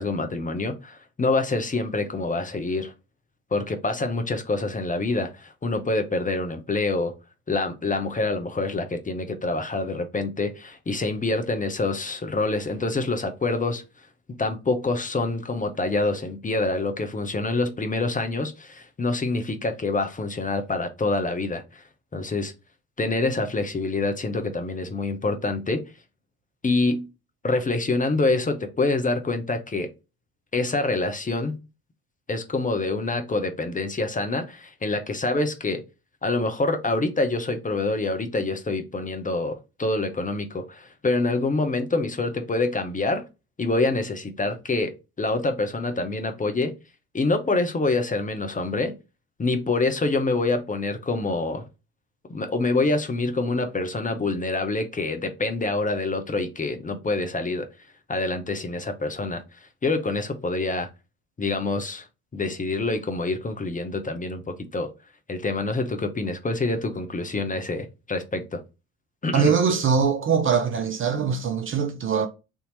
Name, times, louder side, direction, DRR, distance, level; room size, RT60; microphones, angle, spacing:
voice 1, 0.0-2.9 3.5-7.1 7.5-13.8 14.3-21.8 22.1-22.5 23.0-25.8 26.6-27.1 27.4-29.9 30.5-31.6 32.3-35.8 36.2-43.3 43.6-44.9 45.2-46.7 47.1-48.9 49.4-51.6 52.3-57.7 58.1-59.4 59.8-60.9 61.4-62.0 62.3-64.9 65.3-68.6 69.2-69.5, left 3 dB, 20° left, 0.8 m, -26 dB
voice 2, 69.3-72.3, right 6 dB, 30° right, 0.6 m, -22 dB
3.5 x 2.8 x 4.0 m
figure-of-eight pair, 55°, 42 cm